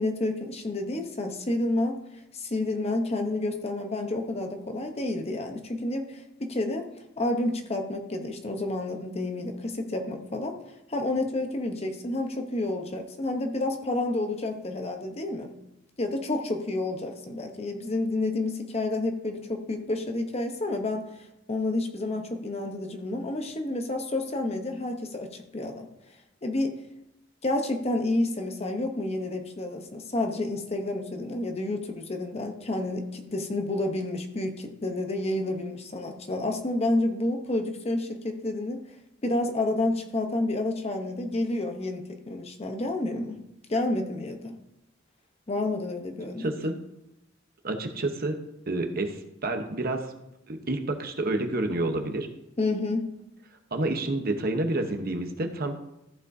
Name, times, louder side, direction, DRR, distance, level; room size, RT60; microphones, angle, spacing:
voice 1, 0.0-2.0 2.3-6.9 7.2-10.6 10.9-15.5 16.0-21.1 21.5-25.9 26.4-26.8 27.4-38.8 39.2-43.4 43.7-44.5 45.5-46.5 52.6-53.1, left 2 dB, 30° left, 5 dB, 0.9 m, -29 dB
voice 2, 46.4-46.7 47.6-48.4 48.7-50.1 50.5-52.3 53.7-55.8, right 2 dB, 50° right, 5 dB, 1.0 m, -29 dB
14.0 x 7.2 x 2.7 m, 0.86 s
head